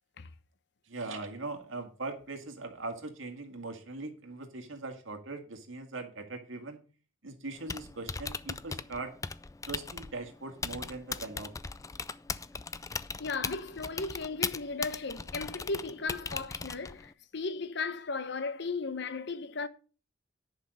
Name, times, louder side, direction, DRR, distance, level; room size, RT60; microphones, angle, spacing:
voice 1, 0.9-6.8 7.2-9.1 9.7-11.5, right 3 dB, 85° right, 2.0 m, -40 dB
Typing, 7.5-17.1, left 4 dB, 15° left, 0.4 m, -39 dB
voice 2, 13.2-19.7, left 4 dB, 60° left, 0.9 m, -36 dB
10.5 x 5.8 x 6.3 m
head